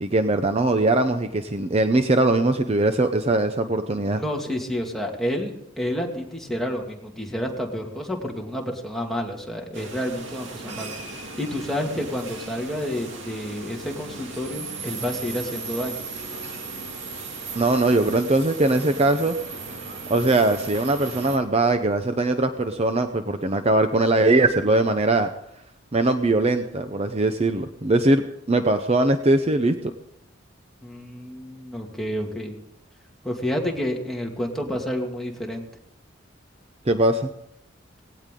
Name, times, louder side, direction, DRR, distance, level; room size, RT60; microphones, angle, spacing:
voice 1, 0.0-4.2 17.6-19.4 20.1-25.3 25.9-29.7 36.9-37.3, right 2 dB, 30° right, 8 dB, 0.7 m, -21 dB
voice 2, 4.1-10.9 11.4-16.0 30.8-32.6 33.2-35.6, equal, ahead, -1 dB, 2.2 m, -29 dB
sound 1, 9.7-21.4, right 4 dB, 75° right, 2.4 m, -36 dB
18.5 x 17.5 x 3.8 m, 0.81 s
head